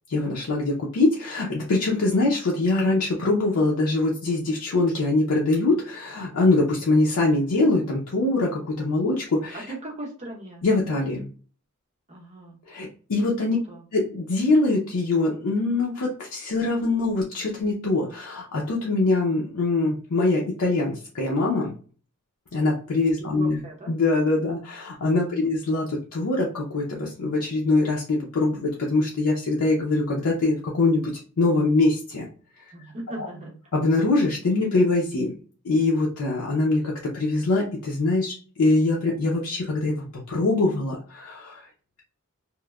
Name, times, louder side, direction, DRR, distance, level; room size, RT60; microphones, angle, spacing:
voice 1, 0.1-9.6 10.6-11.3 12.7-13.6 13.9-21.7 22.5-23.6 23.9-31.1 31.4-32.3 32.6-32.7 33.2-33.3 33.7-35.3 35.6-41.6, left 2 dB, 90° left, -2 dB, 0.6 m, -23 dB
voice 2, 9.7-10.6 12.1-12.6 13.4-13.8 23.2-23.9 25.3-25.5 32.7-33.6, right 2 dB, 30° right, -1 dB, 0.7 m, -38 dB
2.9 x 2.0 x 2.3 m, 0.40 s
head